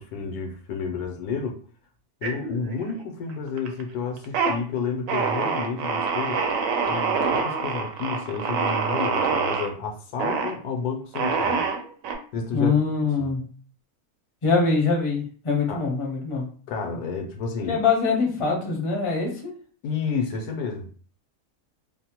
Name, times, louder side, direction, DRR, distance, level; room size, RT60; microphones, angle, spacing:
voice 1, 0.0-1.6 2.2-6.4 6.8-11.6 12.3-12.7 13.2-13.3 15.7-15.8 16.7-17.8 19.8-20.9, left 5 dB, 80° left, 3 dB, 1.1 m, -30 dB
sound 1, 2.2-3.0 3.3-3.8 4.2-4.6 5.1-9.7 10.2-10.5 11.1-12.1, right 5 dB, 70° right, 0.9 m, -25 dB
voice 2, 12.5-13.4 14.4-16.4 17.7-19.5, left 4 dB, 35° left, -1 dB, 0.5 m, -23 dB
2.7 x 2.0 x 2.8 m, 0.41 s
omnidirectional pair, 1.6 m